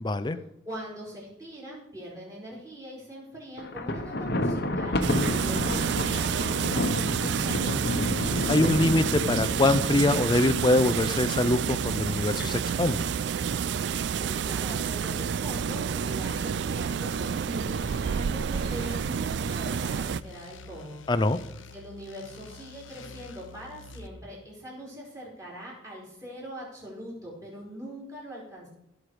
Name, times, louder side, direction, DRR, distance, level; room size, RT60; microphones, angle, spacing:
voice 1, 0.0-0.4 8.5-13.1 21.1-21.4, left 2 dB, 25° left, 11 dB, 0.5 m, -24 dB
voice 2, 0.6-7.9 14.1-21.0 21.7-28.7, equal, 15° right, -5 dB, 5.1 m, -42 dB
Thunder, 3.6-10.8, left 1 dB, 55° left, 1.0 m, -30 dB
sound 1, 5.0-20.2, right 7 dB, 60° right, 0.3 m, -29 dB
sound 2, 16.2-24.1, left 4 dB, 80° left, 0.8 m, -47 dB
17.0 x 6.6 x 4.9 m, 0.83 s
head